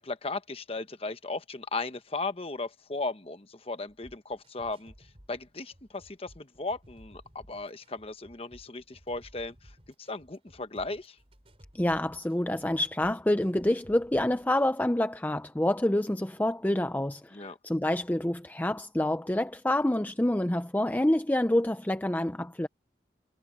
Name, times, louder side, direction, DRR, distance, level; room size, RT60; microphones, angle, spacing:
voice 1, 0.0-11.2 17.3-17.6, left 3 dB, 30° left, 1.1 m, -36 dB
sound 1, 3.9-14.7, equal, 30° right, 6.0 m, -57 dB
voice 2, 11.7-22.7, left 1 dB, 10° left, 0.5 m, -27 dB
head